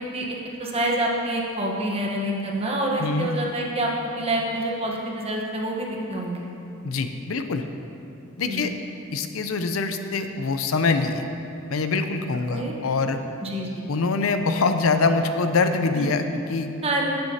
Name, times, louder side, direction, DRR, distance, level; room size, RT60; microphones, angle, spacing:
voice 1, 0.1-6.4 8.5-8.7 12.5-12.7 13.4-13.8 16.0-16.1 16.8-17.2, right 1 dB, 30° right, -1 dB, 1.0 m, -27 dB
voice 2, 3.0-3.3 6.8-7.6 8.4-8.7 9.1-11.2 11.7-13.2 13.9-16.7, left 4 dB, 80° left, 8 dB, 0.6 m, -24 dB
13.5 x 7.8 x 2.8 m, 2.7 s
head